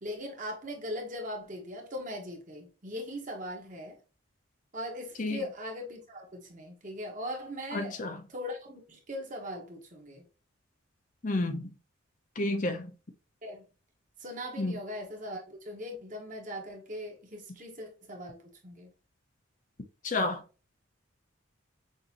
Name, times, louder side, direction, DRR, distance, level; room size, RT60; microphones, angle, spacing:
voice 1, 0.0-4.0 4.7-8.0 8.3-10.2 13.4-13.7 14.2-18.9, equal, 40° right, 1.3 m, -40 dB
voice 2, 7.7-8.2 11.2-11.7 12.4-12.9 14.6-14.7 20.0-20.4, left 2 dB, 40° left, 0.6 m, -30 dB
6.4 x 2.7 x 2.8 m
head